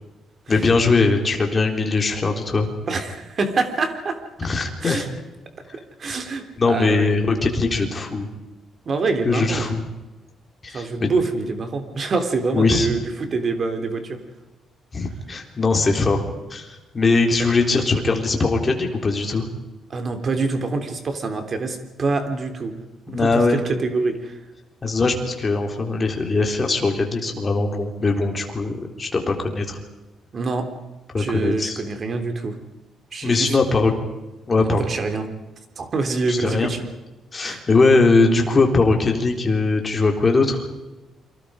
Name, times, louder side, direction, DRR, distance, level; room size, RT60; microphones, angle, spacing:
voice 1, 0.5-2.7 4.4-5.0 6.6-8.3 9.2-9.8 10.6-11.1 12.5-12.9 14.9-19.5 23.1-23.6 24.8-28.7 29.0-29.8 31.1-31.8 33.2-33.9 34.5-34.9 36.3-36.7 37.3-40.6, left 3 dB, 25° left, 3 dB, 3.8 m, -20 dB
voice 2, 2.9-4.2 4.8-5.1 6.0-7.1 8.8-9.7 10.7-14.2 19.9-22.7 23.1-24.4 30.3-30.7 31.1-32.6 33.1-33.6 34.6-35.3 35.8-36.9 37.4-37.6, right 3 dB, 35° right, 7 dB, 3.4 m, -25 dB
29.5 x 24.5 x 5.1 m, 1.1 s
cardioid pair, 150°, 0 cm